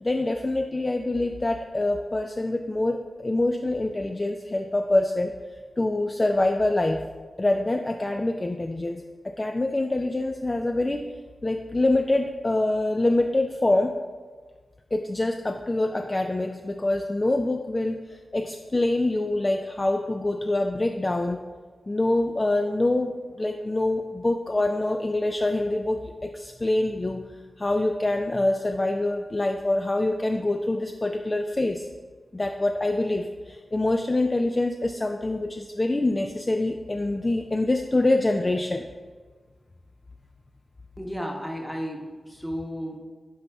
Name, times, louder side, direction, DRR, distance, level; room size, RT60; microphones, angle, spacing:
voice 1, 0.0-5.3 5.8-7.0 7.4-11.1 11.4-14.0 14.9-21.4 21.9-27.3 27.6-31.9 32.3-38.9, left 2 dB, 30° left, 5 dB, 0.3 m, -25 dB
voice 2, 41.0-43.0, equal, ahead, 0 dB, 1.1 m, -33 dB
10.0 x 4.0 x 3.4 m, 1.4 s
wide cardioid pair, 85°, 0 cm